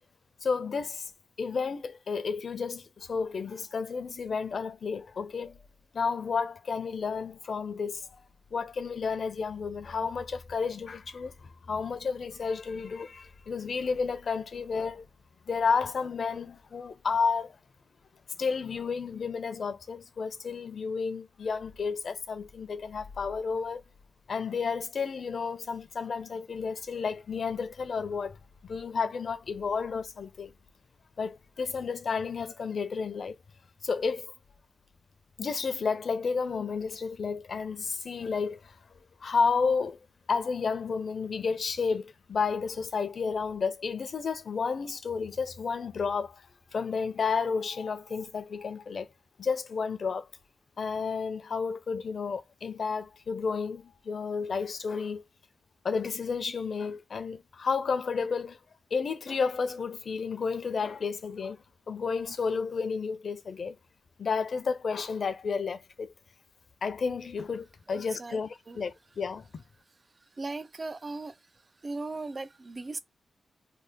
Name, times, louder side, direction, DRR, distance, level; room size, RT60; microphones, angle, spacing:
voice 1, 0.4-1.1 1.4-5.6 5.9-8.1 8.5-15.1 15.5-17.6 18.4-23.8 24.3-30.5 31.2-33.4 33.8-34.3 35.4-40.0 40.3-49.1 49.4-50.3 50.8-55.2 55.8-58.6 58.9-63.8 64.2-66.1 66.8-69.6, left 5 dB, 65° left, 0.5 m, -31 dB
voice 2, 67.9-68.4 68.7-68.8 70.4-71.4 71.8-73.0, right 3 dB, 35° right, 0.3 m, -37 dB
2.8 x 2.1 x 3.4 m
wide cardioid pair, 100°, 0 cm